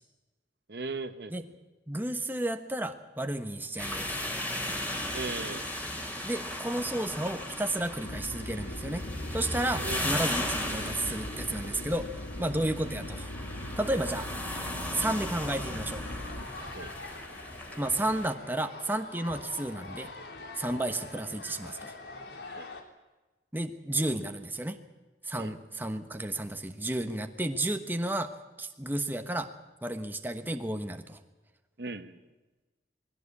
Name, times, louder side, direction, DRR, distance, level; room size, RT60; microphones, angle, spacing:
voice 1, 0.7-1.3 5.1-5.6 9.8-10.1 16.7-16.9 22.5-22.7 25.4-25.5 31.8-32.1, right 3 dB, 65° right, 10 dB, 1.2 m, -37 dB
voice 2, 1.9-4.2 6.2-9.0 9.3-12.1 12.4-13.3 13.8-14.3 14.9-16.0 17.8-20.1 20.6-21.9 23.5-24.8 25.2-28.3 28.6-29.5 29.8-31.2, right 1 dB, 10° right, 7 dB, 1.2 m, -32 dB
sound 1, 3.8-18.3, left 1 dB, 10° left, 3.3 m, -36 dB
sound 2, 8.0-16.5, left 1 dB, 60° left, 1.2 m, -40 dB
sound 3, 16.0-22.8, left 2 dB, 75° left, 3.1 m, -44 dB
21.0 x 16.5 x 8.5 m, 1.2 s
head